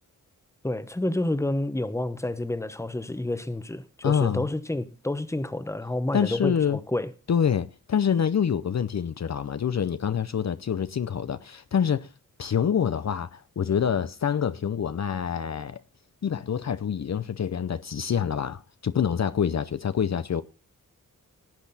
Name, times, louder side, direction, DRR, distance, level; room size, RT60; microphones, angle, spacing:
voice 1, 0.6-7.1, left 1 dB, 10° left, 1.0 m, -29 dB
voice 2, 4.0-4.4 6.1-6.8 7.3-12.1 12.4-15.8 16.2-20.4, left 8 dB, 55° left, 0.6 m, -26 dB
18.0 x 8.5 x 4.1 m
wide cardioid pair, 145°, 33 cm